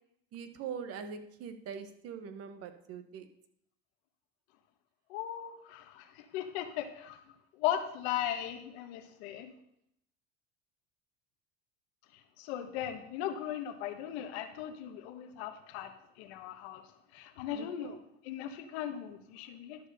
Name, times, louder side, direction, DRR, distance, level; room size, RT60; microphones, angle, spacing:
voice 1, 0.3-3.3 17.5-18.0, right 7 dB, 50° right, 8 dB, 1.2 m, -43 dB
voice 2, 5.1-7.2 7.6-9.5 12.4-16.8 17.1-18.0 18.2-19.8, left 11 dB, 80° left, 7 dB, 1.4 m, -38 dB
11.5 x 4.8 x 6.7 m, 0.75 s
supercardioid pair, 120°, 32 cm